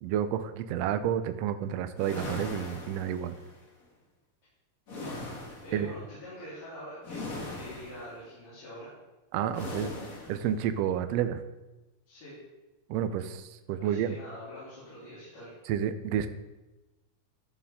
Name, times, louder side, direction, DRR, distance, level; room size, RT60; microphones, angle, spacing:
voice 1, 0.0-3.3 5.7-5.9 9.3-9.9 10.3-11.4 12.9-14.2 15.7-16.3, right 9 dB, 85° right, 10 dB, 1.4 m, -30 dB
Water Whoosh, 2.0-3.6 4.9-5.8 7.0-8.1 9.5-10.5, left 2 dB, 50° left, 1.1 m, -40 dB
voice 2, 5.6-8.9 12.1-12.4 13.8-15.5, left 1 dB, 90° left, -11 dB, 5.1 m, -45 dB
13.5 x 7.0 x 3.6 m, 1.1 s
omnidirectional pair, 3.6 m